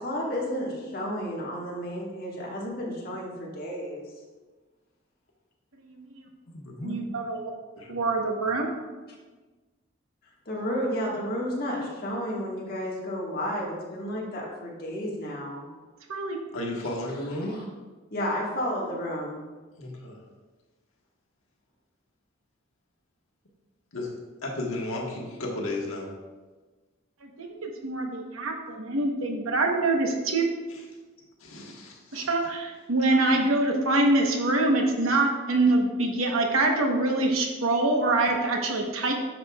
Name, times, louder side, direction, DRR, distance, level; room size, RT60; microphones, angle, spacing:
voice 1, 0.0-4.0 10.4-15.6 18.1-19.4, equal, 45° left, -4 dB, 1.6 m, -32 dB
voice 2, 5.9-6.2 6.8-7.5 7.9-8.7 16.1-16.4 27.2-30.4 32.1-39.1, right 2 dB, 90° right, 2 dB, 1.0 m, -25 dB
voice 3, 6.5-7.0 7.8-7.9 16.5-17.6 19.8-20.2 23.9-24.1 24.4-26.1 30.7-30.8 31.4-32.6, left 1 dB, 85° left, -1 dB, 1.4 m, -34 dB
9.2 x 6.0 x 2.4 m, 1.3 s
head